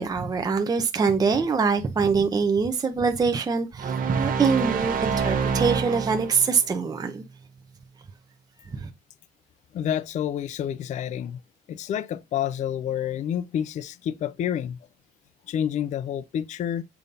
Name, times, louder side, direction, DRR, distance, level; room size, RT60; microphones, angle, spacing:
voice 1, 0.0-7.2 8.7-8.9, right 5 dB, 20° right, 0.7 m, -24 dB
sound 1, 3.8-6.6, right 6 dB, 55° right, 1.1 m, -26 dB
voice 2, 9.7-11.4 11.7-14.8 15.5-16.8, left 9 dB, 45° left, 0.4 m, -29 dB
6.9 x 2.6 x 5.3 m
cardioid pair, 110°, 17 cm